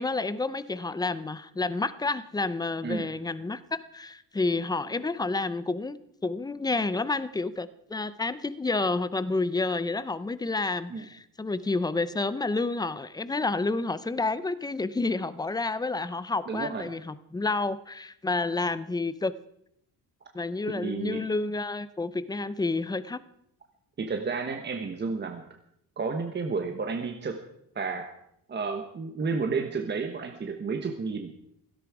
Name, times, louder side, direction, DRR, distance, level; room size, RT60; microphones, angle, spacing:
voice 1, 0.0-6.0 6.2-19.3 20.3-23.2, left 3 dB, 10° left, 15 dB, 0.5 m, -29 dB
voice 2, 16.5-16.9 20.7-21.2 24.0-25.4 26.0-27.4 27.7-28.1 28.5-31.3, right 4 dB, 25° right, 5 dB, 1.2 m, -31 dB
17.0 x 16.5 x 4.8 m, 0.74 s
cardioid pair, 175°, 40 cm